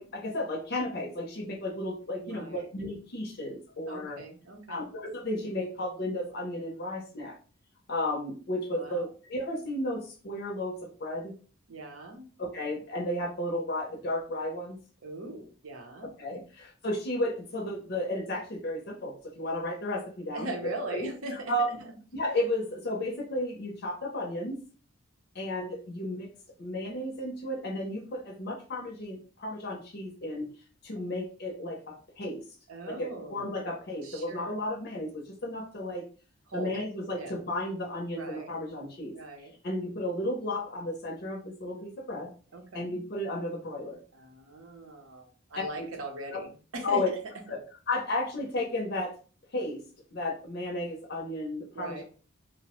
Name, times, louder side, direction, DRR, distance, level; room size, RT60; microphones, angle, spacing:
voice 1, 0.0-4.2 4.7-7.4 7.9-11.3 12.4-14.8 16.2-21.1 21.5-21.7 22.1-24.6 25.3-26.3 26.6-30.5 30.8-32.4 32.9-36.0 36.5-39.1 39.6-42.3 42.7-44.0 45.6-45.9 46.3-46.4 46.8-47.1 47.5-49.1 49.5-49.8 50.1-52.0, left 1 dB, 50° left, 0 dB, 0.5 m, -33 dB
voice 2, 2.2-2.7 3.9-4.9 8.7-9.0 11.7-12.2 15.0-16.4 20.3-21.5 30.9-31.0 32.7-33.6 34.0-34.6 36.5-36.8 37.2-37.4 38.1-38.5 39.1-39.5 42.5-43.0 44.1-47.0 51.7-52.0, right 2 dB, 85° right, 3 dB, 0.7 m, -40 dB
2.8 x 2.0 x 2.9 m, 0.38 s
head